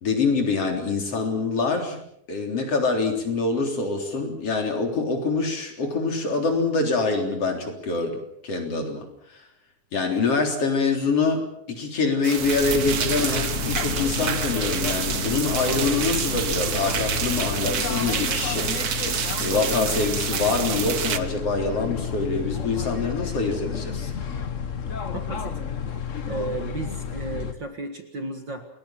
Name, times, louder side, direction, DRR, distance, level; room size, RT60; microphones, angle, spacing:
voice 1, 0.0-2.0 2.3-9.0 9.3-9.4 9.9-24.1, left 4 dB, 50° left, 3 dB, 4.6 m, -25 dB
sound 1, 12.2-21.2, right 7 dB, 60° right, 0.9 m, -28 dB
sound 2, 12.4-17.7, left 3 dB, 35° left, 4.8 m, -38 dB
sound 3, 12.6-27.5, left 6 dB, 85° left, 0.6 m, -31 dB
voice 2, 25.1-25.6 26.3-28.7, right 3 dB, 45° right, 6 dB, 2.0 m, -34 dB
29.5 x 20.5 x 5.9 m, 0.71 s
omnidirectional pair, 3.4 m